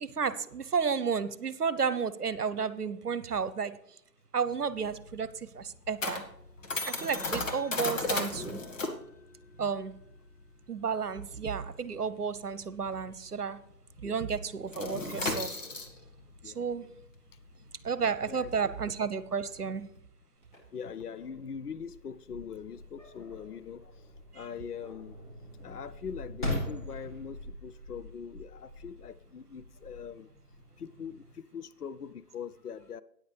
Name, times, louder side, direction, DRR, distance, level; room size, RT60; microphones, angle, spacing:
voice 1, 0.0-3.8 4.3-6.2 6.9-8.6 9.6-9.9 10.7-13.6 14.0-15.6 16.4-16.9 17.8-19.9 24.3-24.4, right 6 dB, 65° right, 0.9 m, -32 dB
sound 1, 4.5-13.5 13.7-14.0 14.3-20.0, left 2 dB, 50° left, 1.7 m, -36 dB
voice 2, 18.3-18.7 20.7-23.9 24.3-25.2 25.6-30.3 30.8-33.0, left 7 dB, 65° left, 0.6 m, -42 dB
sound 2, 20.4-31.3, left 1 dB, 30° left, 5.3 m, -42 dB
14.0 x 9.6 x 3.3 m
figure-of-eight pair, 145°, 50 cm